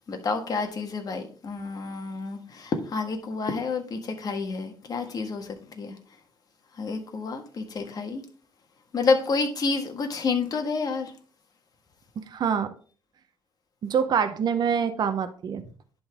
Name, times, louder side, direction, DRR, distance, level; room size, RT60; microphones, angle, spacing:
voice 1, 0.1-5.9 6.8-8.2 8.9-11.1, left 4 dB, 45° left, 4 dB, 1.5 m, -29 dB
voice 2, 12.2-12.7 13.9-15.6, right 7 dB, 50° right, 9 dB, 0.8 m, -25 dB
11.0 x 3.9 x 3.5 m, 0.42 s
cardioid pair, 100°, 9 cm